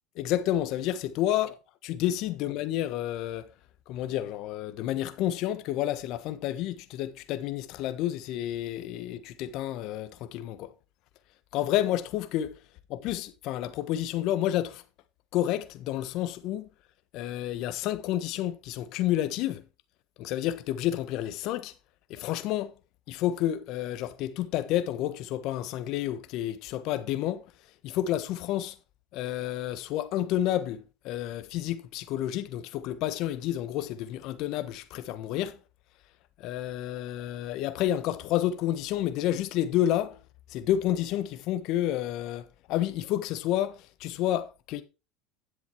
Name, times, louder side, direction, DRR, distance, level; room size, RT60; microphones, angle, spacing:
voice 1, 0.2-1.5 1.8-3.5 3.9-10.7 11.5-12.5 12.9-14.8 15.3-16.7 17.1-19.6 20.2-21.7 22.1-22.7 23.1-27.4 27.8-28.7 29.1-35.6 36.4-40.2 40.5-44.8, left 12 dB, 60° left, 1.3 m, -30 dB
10.5 x 7.7 x 4.8 m
supercardioid pair, 115°, 0 cm